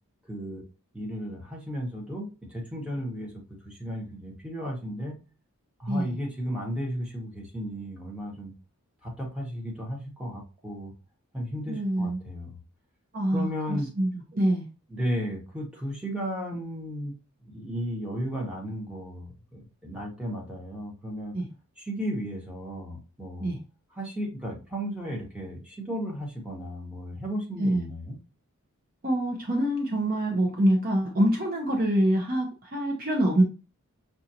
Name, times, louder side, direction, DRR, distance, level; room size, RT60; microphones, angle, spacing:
voice 1, 0.3-0.6 0.9-5.2 5.8-8.5 9.0-10.9 11.3-12.6 13.3-13.9 14.9-17.1 17.5-21.4 21.8-23.5 23.9-28.2, equal, 5° right, -2 dB, 1.3 m, -34 dB
voice 2, 11.7-12.2 13.1-14.7 21.3-21.4 23.4-23.6 27.6-27.9 29.0-33.4, right 1 dB, 40° right, 1 dB, 0.8 m, -25 dB
6.1 x 2.6 x 2.8 m, 0.31 s
head